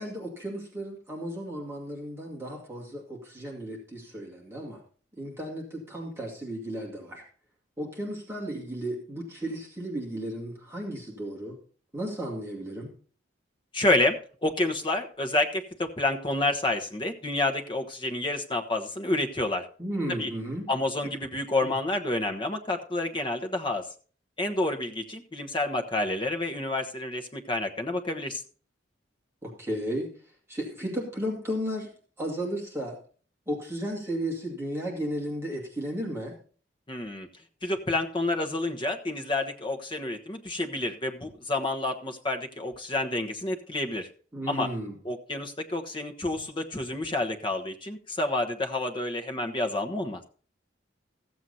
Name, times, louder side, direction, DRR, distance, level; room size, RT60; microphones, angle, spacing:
voice 1, 0.0-4.8 5.2-7.2 7.8-11.6 11.9-12.9 19.8-20.7 21.6-21.7 29.4-30.1 30.5-31.9 32.2-33.0 33.5-36.3 44.3-44.9, equal, 15° right, -2 dB, 2.3 m, -34 dB
voice 2, 13.7-19.7 20.1-20.3 20.7-23.9 24.4-28.4 36.9-37.3 37.6-44.1 44.5-44.7 45.0-50.2, left 2 dB, 25° left, 5 dB, 1.2 m, -29 dB
14.5 x 7.8 x 4.1 m, 0.41 s
head